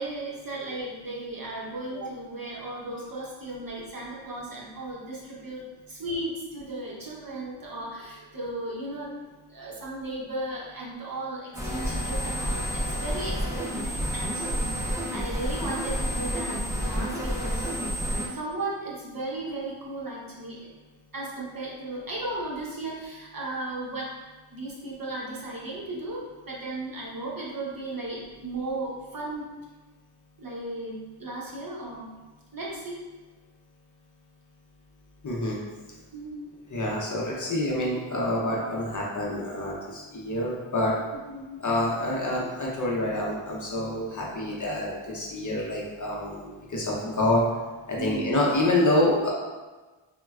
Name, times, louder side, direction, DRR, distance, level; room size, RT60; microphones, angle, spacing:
voice 1, 0.0-5.6 5.9-9.1 9.5-17.8 18.3-20.7 21.1-24.2 24.5-29.5 30.4-32.1 32.5-33.0 36.1-36.5 41.3-41.6 48.0-48.4, right 2 dB, 45° right, -4 dB, 0.8 m, -35 dB
sound 1, 11.5-18.3, equal, 5° right, 0.4 m, -29 dB
voice 2, 35.2-35.6 36.7-40.9 41.6-47.4 47.9-49.3, left 1 dB, 40° left, -3 dB, 0.6 m, -27 dB
3.9 x 2.2 x 2.3 m, 1.2 s
cardioid pair, 60°, 50 cm